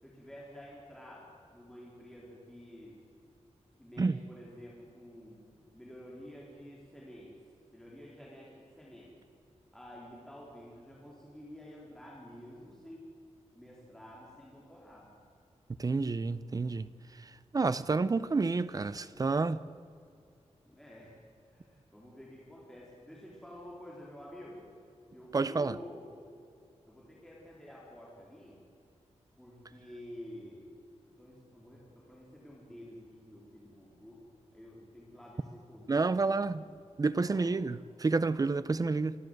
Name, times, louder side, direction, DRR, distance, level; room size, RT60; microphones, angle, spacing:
voice 1, 0.0-3.0 3.8-7.3 7.7-9.1 9.7-13.1 13.5-15.1 20.6-21.2 21.5-24.6 25.1-26.1 26.9-28.6 29.4-30.7 31.2-34.2 34.5-36.3 37.1-37.5, left 1 dB, 5° left, 3.9 m, -50 dB
voice 2, 15.8-16.9 17.5-19.6 25.3-25.8 35.9-36.7 37.0-39.1, right 3 dB, 30° right, 0.6 m, -29 dB
27.5 x 12.0 x 8.0 m
wide cardioid pair, 155°, 12 cm